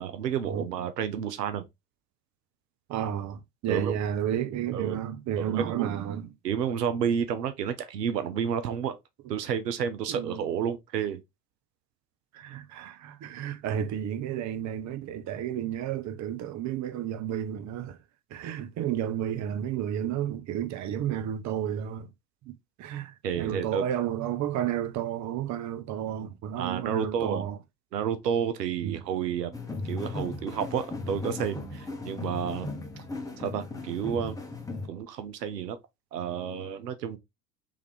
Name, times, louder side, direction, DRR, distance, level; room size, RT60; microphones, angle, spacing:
voice 1, 0.0-1.7 3.7-4.0 4.7-5.0 5.4-5.9 6.4-9.0 9.3-11.2 23.2-23.9 26.5-27.5 27.9-29.6 29.8-32.7 33.0-33.1 33.4-34.4 34.9-35.8 36.1-37.2, right 8 dB, 85° right, 0.7 m, -30 dB
voice 2, 2.9-6.3 10.1-10.4 12.3-18.0 18.3-22.1 22.8-27.6 28.8-29.0, right 10 dB, 35° right, 0.7 m, -32 dB
sound 1, 29.5-34.9, left 2 dB, 5° left, 1.1 m, -36 dB
3.5 x 3.3 x 3.3 m
hypercardioid pair, 75°, 48 cm